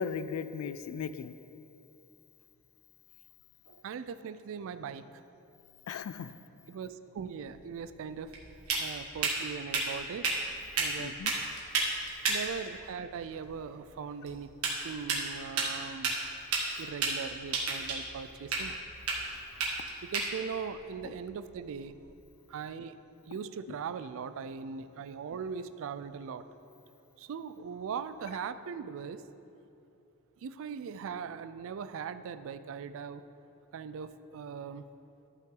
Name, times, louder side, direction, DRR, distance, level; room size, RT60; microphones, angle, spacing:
voice 1, 0.0-1.3 5.9-6.3 11.0-11.3 21.0-21.1, left 6 dB, 70° left, 14 dB, 0.3 m, -37 dB
voice 2, 3.7-5.2 6.7-8.3 8.8-10.3 10.8-11.2 12.3-14.5 14.8-16.2 16.8-18.8 20.0-21.9 22.5-23.0 23.2-26.4 27.2-29.2 30.4-33.2 33.7-34.8, right 6 dB, 65° right, 12 dB, 0.3 m, -40 dB
sound 1, 7.4-22.1, right 3 dB, 80° right, 1.5 m, -35 dB
12.0 x 5.7 x 3.8 m, 2.8 s
head